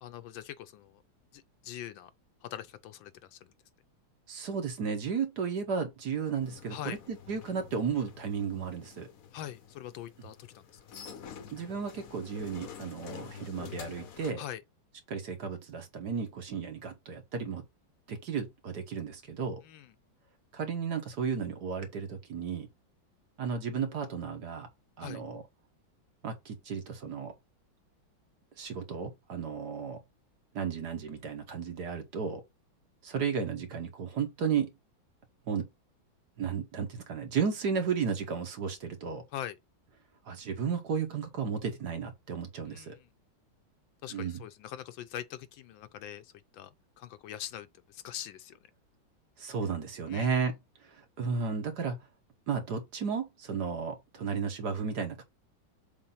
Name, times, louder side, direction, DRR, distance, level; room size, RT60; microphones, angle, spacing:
voice 1, 0.0-1.0 1.3-2.1 2.4-3.4 6.7-7.0 9.3-10.6 14.4-14.6 19.6-19.9 25.0-25.2 39.3-39.6 42.7-43.0 44.0-46.7 47.0-48.6 50.1-50.5, left 11 dB, 75° left, 1.3 m, -42 dB
voice 2, 4.3-9.1 11.5-14.4 15.1-17.6 18.1-19.6 20.5-22.7 23.4-24.7 25.0-25.4 26.2-27.3 28.6-30.0 30.5-32.4 33.0-34.7 35.5-35.7 36.4-39.2 40.3-42.9 44.1-44.4 49.4-50.6 50.9-52.0 52.5-55.2, right 6 dB, 55° right, 1.6 m, -33 dB
sound 1, 6.4-14.3, left 8 dB, 60° left, 1.0 m, -48 dB
7.1 x 2.6 x 5.6 m
omnidirectional pair, 2.2 m